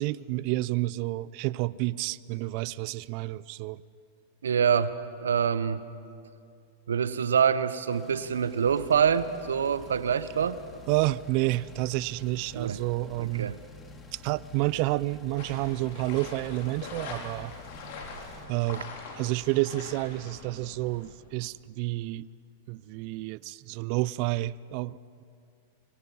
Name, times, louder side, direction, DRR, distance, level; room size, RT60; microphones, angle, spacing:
voice 1, 0.0-3.8 10.9-13.5 14.1-17.5 18.5-18.9 19.2-22.3 22.7-25.2, right 18 dB, 50° right, 21 dB, 0.5 m, -30 dB
voice 2, 4.4-5.8 6.9-10.6 12.5-12.8 13.2-13.6, right 7 dB, 80° right, 15 dB, 0.8 m, -26 dB
sound 1, 7.9-18.5, left 2 dB, 20° left, 2.5 m, -52 dB
sound 2, 8.6-17.8, left 5 dB, 10° right, 3.8 m, -51 dB
sound 3, 15.4-21.1, left 4 dB, 60° left, 4.4 m, -43 dB
25.0 x 23.5 x 5.5 m, 2.4 s
hypercardioid pair, 105°, 0 cm